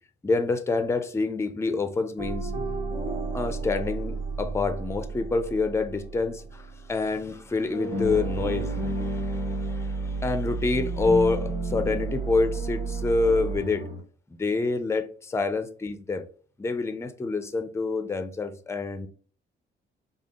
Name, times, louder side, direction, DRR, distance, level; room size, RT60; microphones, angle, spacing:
voice 1, 0.2-2.5 3.3-13.9 14.4-16.2 16.6-19.1, left 3 dB, 15° left, 0.4 m, -27 dB
sound 1, 2.2-7.4 7.7-14.0, right 3 dB, 30° right, 1.4 m, -31 dB
3.5 x 2.0 x 3.6 m
cardioid pair, 90°, 20 cm